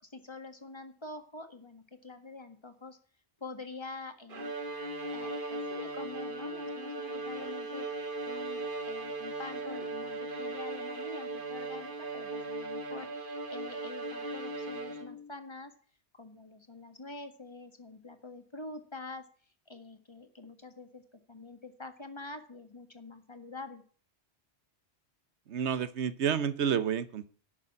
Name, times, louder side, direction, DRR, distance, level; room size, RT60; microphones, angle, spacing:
voice 1, 0.0-3.0 3.4-4.5 5.1-7.9 8.2-15.7 16.1-19.2 19.7-23.8, left 3 dB, 25° left, 8 dB, 1.6 m, -46 dB
Bowed string instrument, 4.3-15.3, right 2 dB, 50° right, 1.7 m, -38 dB
voice 2, 25.5-27.3, right 8 dB, 85° right, 15 dB, 1.2 m, -30 dB
11.5 x 6.8 x 8.7 m, 0.43 s
omnidirectional pair, 1.1 m